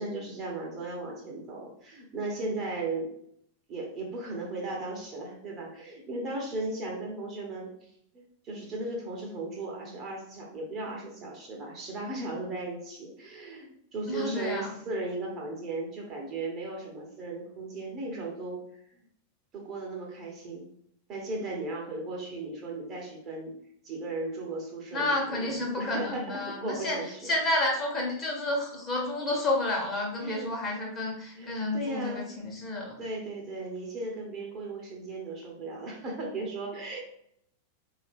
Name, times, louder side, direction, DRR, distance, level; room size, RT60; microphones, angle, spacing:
voice 1, 0.0-3.1 3.7-18.6 18.9-19.0 19.5-20.7 21.1-23.5 23.8-27.3 30.2-30.5 31.3-32.3 33.0-37.0, right 2 dB, 30° right, -1 dB, 1.3 m, -36 dB
voice 2, 14.1-14.7 24.9-33.0, left 2 dB, 25° left, -1 dB, 1.4 m, -30 dB
4.6 x 2.8 x 3.6 m, 0.71 s
figure-of-eight pair, 90°, 0 cm